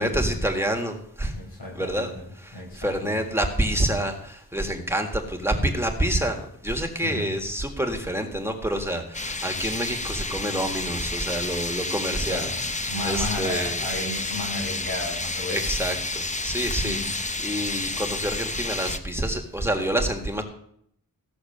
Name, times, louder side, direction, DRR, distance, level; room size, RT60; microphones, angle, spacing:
voice 1, 0.0-1.3 1.8-13.8 15.5-20.4, right 1 dB, 5° right, 3 dB, 1.7 m, -28 dB
voice 2, 1.3-2.2 2.5-3.2 7.0-7.4 12.2-16.0 16.8-17.2, left 1 dB, 80° left, -3 dB, 6.5 m, -34 dB
sound 1, 9.1-19.0, left 2 dB, 20° left, 0.7 m, -30 dB
15.5 x 6.5 x 6.7 m, 0.70 s
wide cardioid pair, 95°, 36 cm